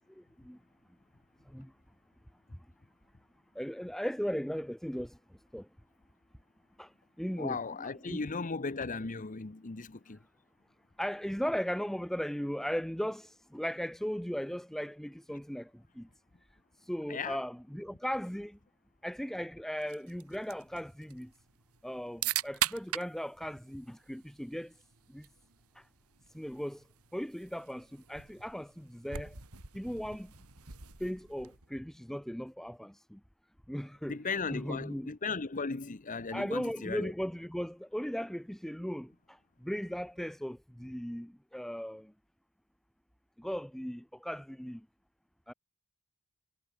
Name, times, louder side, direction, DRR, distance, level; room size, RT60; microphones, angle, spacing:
voice 1, 0.1-0.6 1.5-1.7 3.5-5.2 5.5-5.7 6.8-8.2 11.0-16.1 16.8-18.6 19.0-21.3 21.8-24.7 25.1-25.3 25.7-25.9 26.3-26.8 27.1-29.3 29.7-30.3 31.0-33.2 33.7-34.2 34.5-35.1 36.3-42.1 43.4-44.9 45.5-45.6, equal, ahead, 0.6 m, -37 dB
voice 2, 7.4-10.2 17.1-17.4 34.1-37.1, left 4 dB, 35° left, 0.9 m, -36 dB
sound 1, 19.8-31.7, right 11 dB, 80° right, 3.3 m, -42 dB
head